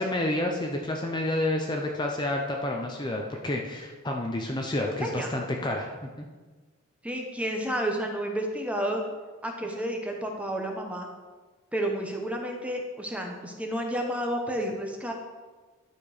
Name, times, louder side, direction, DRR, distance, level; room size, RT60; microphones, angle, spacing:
voice 1, 0.0-6.3, left 1 dB, 20° left, 1 dB, 0.6 m, -29 dB
voice 2, 5.0-5.3 7.0-9.0 9.4-11.1 11.7-15.1, right 1 dB, 5° right, 2 dB, 0.9 m, -31 dB
11.5 x 4.4 x 5.0 m, 1.3 s
head